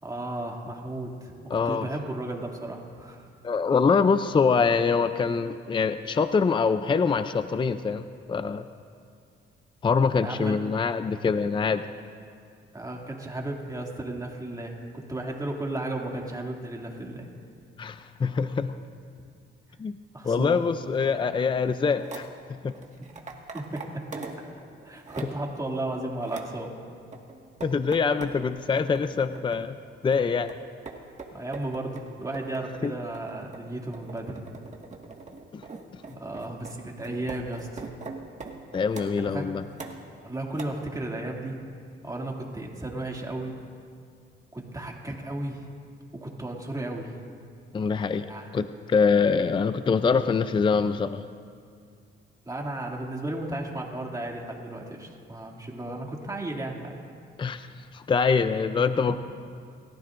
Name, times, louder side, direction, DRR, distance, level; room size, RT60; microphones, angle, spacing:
voice 1, 0.0-3.2 10.2-10.6 12.7-17.3 20.1-20.6 23.5-24.0 24.8-26.7 31.3-34.3 36.2-37.8 39.2-39.5 40.2-41.6 42.0-43.6 44.5-45.6 46.1-47.1 48.2-48.5 52.4-57.0 59.1-59.2, right 1 dB, 15° right, 0 dB, 2.5 m, -34 dB
voice 2, 1.5-1.9 3.4-8.6 9.8-11.8 17.8-18.7 19.8-20.0 20.2-22.3 22.6-22.7 27.6-29.8 30.0-30.5 32.8-32.9 35.5-35.6 38.7-39.6 47.7-48.3 48.5-51.2 57.4-57.7 57.9-59.2, left 5 dB, 25° left, 11 dB, 0.5 m, -24 dB
sound 1, 22.0-22.3 22.7-24.5 24.8-25.5 25.9-26.6 27.1-28.4 28.8-29.7 30.1-39.2 39.7-40.2 40.5-40.6, right 4 dB, 35° right, 1.8 m, -41 dB
29.5 x 14.5 x 2.6 m, 2.4 s
cardioid pair, 90°, 20 cm